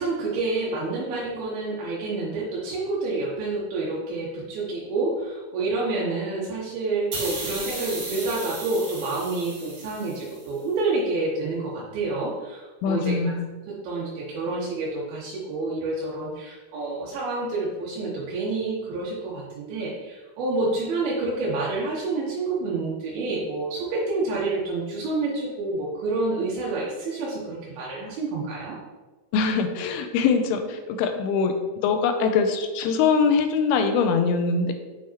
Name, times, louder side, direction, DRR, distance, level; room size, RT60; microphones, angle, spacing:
voice 1, 0.0-13.2 13.7-28.8, right 3 dB, 90° right, -5 dB, 2.8 m, -28 dB
sound 1, 7.1-10.5, right 2 dB, 45° right, 2.6 m, -35 dB
voice 2, 12.8-13.5 29.3-31.5 31.8-34.7, left 5 dB, 90° left, 6 dB, 2.5 m, -22 dB
7.2 x 4.6 x 3.0 m, 1.2 s
omnidirectional pair, 4.4 m